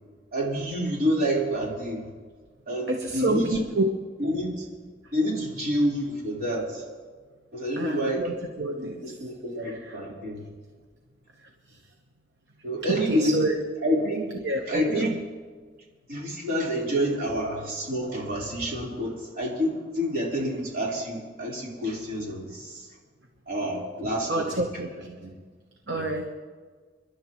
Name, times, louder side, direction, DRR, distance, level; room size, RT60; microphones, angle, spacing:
voice 1, 0.3-2.1 2.7-3.5 4.2-4.7 5.1-6.8 7.5-8.3 8.8-10.4 12.6-13.4 13.8-14.3 14.7-15.2 16.1-22.9 23.5-24.6 25.0-25.3 25.9-26.1, equal, 55° right, -4 dB, 4.1 m, -28 dB
voice 2, 2.9-3.8 7.8-9.0 9.6-10.0 12.9-13.6 14.4-15.1 24.3-24.9 25.9-26.3, right 2 dB, 70° right, 3 dB, 1.1 m, -28 dB
29.5 x 11.5 x 3.1 m, 1.5 s
head